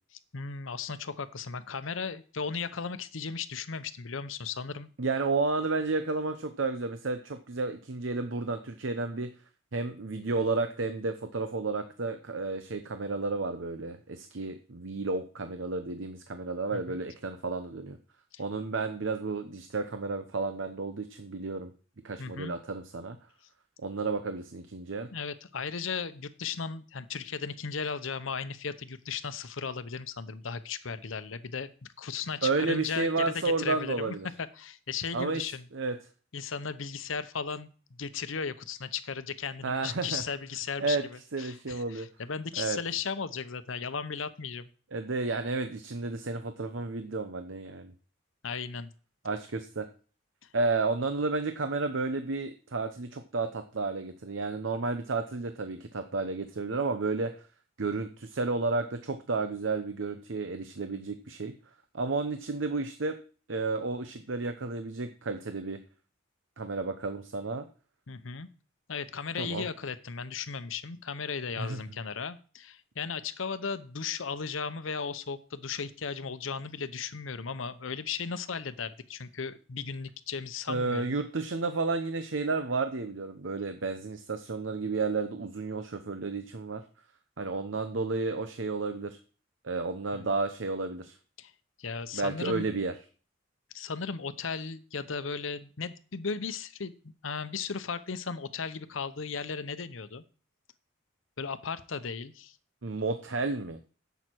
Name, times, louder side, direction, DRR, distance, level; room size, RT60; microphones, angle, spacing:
voice 1, 0.3-4.9 16.7-17.0 18.3-18.4 22.2-22.5 25.1-31.7 32.0-35.7 36.3-44.7 48.4-48.9 68.1-68.5 68.9-81.1 90.1-90.3 91.4-91.5 91.8-92.7 93.7-100.2 101.4-102.6, left 5 dB, 80° left, 13 dB, 0.8 m, -36 dB
voice 2, 5.0-9.3 9.7-18.0 18.4-21.7 22.0-23.2 23.8-25.1 32.4-34.3 35.1-36.0 39.6-40.2 40.8-41.0 41.3-42.1 42.6-42.8 44.9-47.9 49.2-49.9 50.5-57.3 57.8-61.5 61.9-63.2 63.5-65.8 66.6-67.7 69.4-69.7 71.6-71.8 80.7-86.8 87.4-89.2 89.6-91.2 92.1-92.9 102.8-103.8, right 3 dB, 70° right, 8 dB, 0.8 m, -32 dB
11.0 x 8.1 x 4.6 m, 0.39 s
head